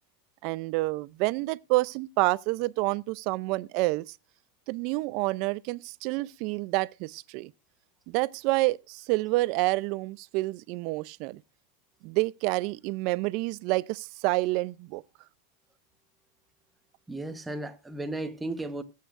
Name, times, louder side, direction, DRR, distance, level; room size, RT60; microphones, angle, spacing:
voice 1, 0.4-4.2 4.7-7.5 8.1-11.4 12.0-15.0, right 21 dB, 50° right, 0.5 m, -28 dB
voice 2, 17.1-18.8, right 2 dB, 10° right, 1.2 m, -34 dB
19.0 x 8.4 x 2.5 m
supercardioid pair, 140°, 0 cm